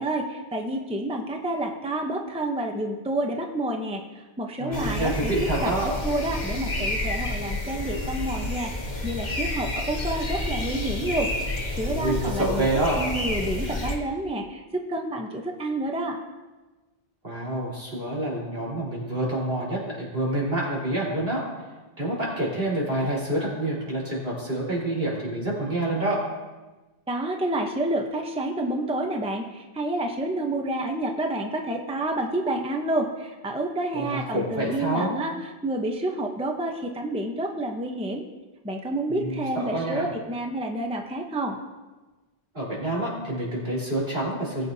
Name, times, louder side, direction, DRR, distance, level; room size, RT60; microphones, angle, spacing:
voice 1, 0.0-5.3 5.6-12.7 13.0-16.2 27.1-35.3 35.6-38.2 38.6-41.6, right 1 dB, 5° right, 2 dB, 0.8 m, -29 dB
voice 2, 4.6-5.9 11.8-13.0 17.2-21.4 22.0-26.2 33.9-35.1 39.1-40.1 42.5-44.7, right 1 dB, 70° right, -5 dB, 4.6 m, -27 dB
sound 1, 4.7-14.0, left 1 dB, 45° left, 1.6 m, -30 dB
20.0 x 8.5 x 2.8 m, 1.2 s
omnidirectional pair, 1.0 m